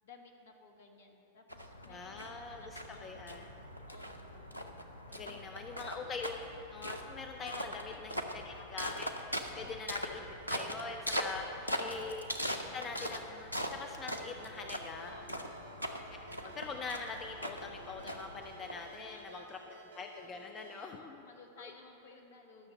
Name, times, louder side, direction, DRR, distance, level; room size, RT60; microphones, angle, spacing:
voice 1, 0.0-3.5 3.7-4.5 5.1-5.9 7.4-8.3 9.5-10.2 11.4-12.0 15.1-15.6 19.0-19.8 20.7-22.7, left 4 dB, 60° left, 3 dB, 1.5 m, -56 dB
sound 1, 1.5-19.2, equal, 85° left, 0.7 m, -41 dB
voice 2, 1.9-2.6 3.0-3.5 5.1-6.4 6.7-10.2 10.5-11.4 11.8-12.3 12.6-15.1 16.4-21.2, left 4 dB, 25° left, 4 dB, 0.6 m, -43 dB
Ringtone, 14.1-21.0, right 2 dB, 70° right, 0.8 m, -54 dB
12.0 x 6.3 x 7.1 m, 2.9 s
figure-of-eight pair, 90°, 0 cm